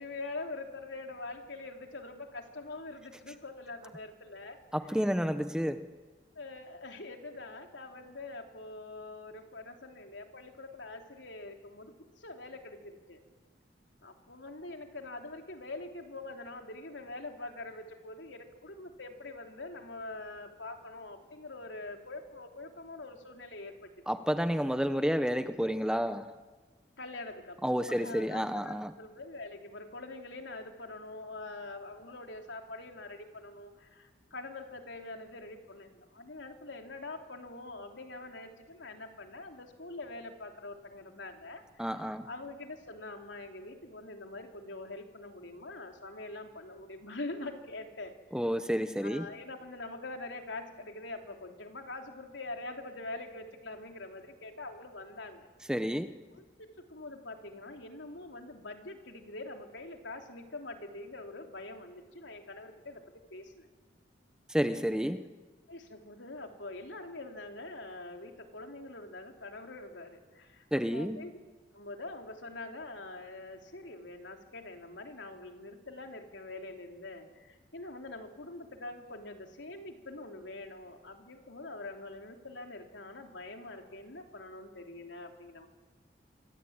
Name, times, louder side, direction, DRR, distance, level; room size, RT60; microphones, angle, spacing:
voice 1, 0.0-5.1 6.3-13.2 14.0-23.9 27.0-41.9 42.2-48.2 49.0-55.5 56.3-63.0 63.3-63.7 65.7-71.4 71.7-85.7, left 2 dB, 80° left, 3.3 m, -44 dB
voice 2, 4.7-5.9 24.1-26.3 27.6-28.9 41.8-42.3 48.3-49.3 55.7-56.2 64.5-65.2 70.7-71.2, equal, 5° right, 0.9 m, -30 dB
26.0 x 25.0 x 8.8 m
head